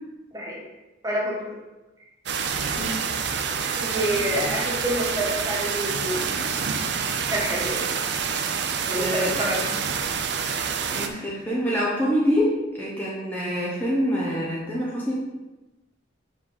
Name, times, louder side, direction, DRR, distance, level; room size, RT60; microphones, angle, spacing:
voice 1, 0.3-0.6 1.0-1.5 3.7-6.2 7.3-7.9 8.9-9.6, equal, 15° right, -4 dB, 1.7 m, -27 dB
sound 1, 2.3-11.1, right 6 dB, 60° right, 0.6 m, -27 dB
voice 2, 2.6-3.1 4.1-4.5 9.0-9.9 10.9-15.2, equal, 10° left, -6 dB, 1.0 m, -26 dB
5.5 x 5.1 x 5.5 m, 1.1 s
head